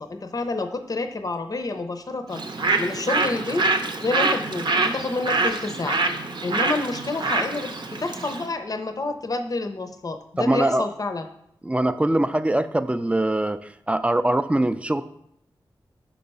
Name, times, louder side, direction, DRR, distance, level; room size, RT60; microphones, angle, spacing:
voice 1, 0.0-3.7 4.0-6.0 6.4-11.3, left 3 dB, 45° left, 7 dB, 0.6 m, -29 dB
Bird, 2.3-8.5, right 3 dB, 60° right, 0.7 m, -25 dB
voice 2, 10.4-10.9 11.6-13.6 13.9-15.0, right 1 dB, 15° right, 11 dB, 0.4 m, -22 dB
5.9 x 4.6 x 5.4 m, 0.73 s
wide cardioid pair, 65°, 9 cm